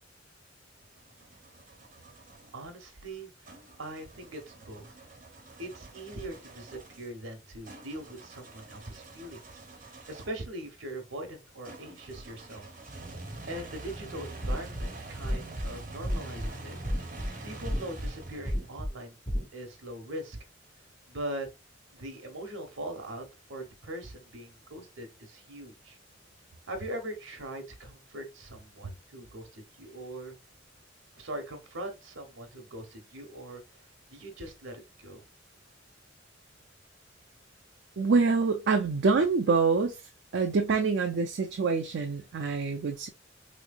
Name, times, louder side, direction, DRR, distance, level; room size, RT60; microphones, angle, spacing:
sound 1, 0.7-2.5 3.4-10.5 11.6-18.9, right 2 dB, 45° right, 1.3 m, -46 dB
voice 1, 2.5-3.3 3.8-4.9 5.6-9.6 10.1-12.7 13.5-16.8 17.4-19.2 19.5-20.4 21.1-21.5 21.9-26.0 26.7-30.4 31.2-33.6 34.1-35.2, right 1 dB, 90° right, 1.1 m, -41 dB
sound 2, 14.4-14.8 15.2-15.7 16.0-16.5 16.8-17.3 17.6-18.1 18.5-18.9 19.3-19.5, equal, 5° left, 0.9 m, -31 dB
voice 2, 38.0-40.0 40.3-43.1, right 4 dB, 65° right, 0.4 m, -26 dB
3.6 x 3.1 x 2.4 m
head